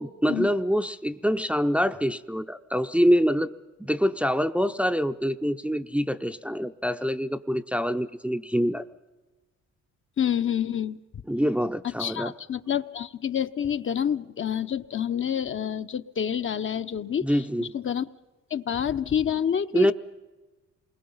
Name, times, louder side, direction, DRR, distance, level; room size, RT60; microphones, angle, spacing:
voice 1, 0.0-3.5 3.8-8.8 11.3-12.3 17.2-17.7 19.7-19.9, equal, 5° right, 8 dB, 0.6 m, -25 dB
voice 2, 10.2-11.0 12.0-17.3 17.6-18.1 18.5-19.9, left 8 dB, 40° left, 9 dB, 0.7 m, -28 dB
27.5 x 21.0 x 5.6 m, 1.2 s
cardioid pair, 90°, 30 cm